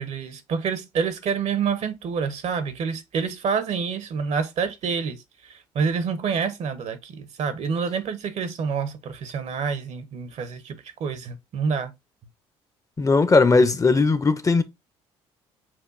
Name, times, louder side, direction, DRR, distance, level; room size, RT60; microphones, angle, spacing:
voice 1, 0.0-5.2 5.4-11.9, right 6 dB, 60° right, 0.9 m, -27 dB
voice 2, 13.0-14.6, left 3 dB, 25° left, 0.6 m, -18 dB
7.3 x 2.6 x 2.5 m
hypercardioid pair, 65°, 13 cm